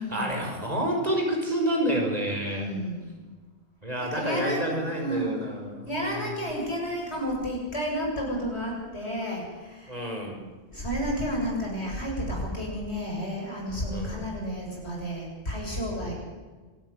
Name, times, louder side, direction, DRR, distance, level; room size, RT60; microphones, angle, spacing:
voice 1, 0.0-2.7 3.8-6.4 9.9-10.4 13.9-14.3 16.1-16.2, equal, 35° right, 1 dB, 5.6 m, -29 dB
voice 2, 2.4-3.1 4.0-5.4 5.9-9.9 10.7-16.1, equal, 75° left, -1 dB, 7.9 m, -31 dB
26.0 x 13.5 x 9.9 m, 1.3 s
omnidirectional pair, 1.1 m